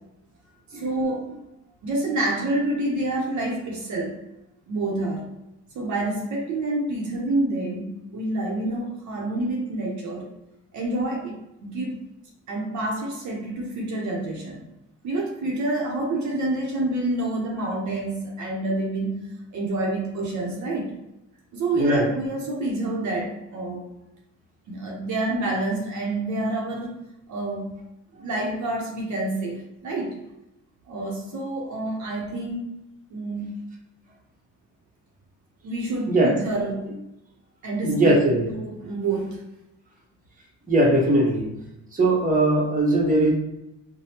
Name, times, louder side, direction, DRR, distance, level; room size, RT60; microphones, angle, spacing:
voice 1, 0.7-1.3 1.8-4.2 4.7-5.3 5.7-10.3 10.7-12.0 12.5-14.7 15.0-20.9 21.5-23.9 24.7-26.9 27.3-27.7 28.2-30.2 30.9-32.7 33.1-33.6 35.6-36.9 37.6-38.3 38.5-39.4, right 2 dB, 70° right, -1 dB, 0.8 m, -28 dB
voice 2, 37.8-38.5 40.7-41.5 41.9-43.3, right 1 dB, 25° right, -2 dB, 0.9 m, -20 dB
3.2 x 2.2 x 2.8 m, 0.90 s
cardioid pair, 90°, 30 cm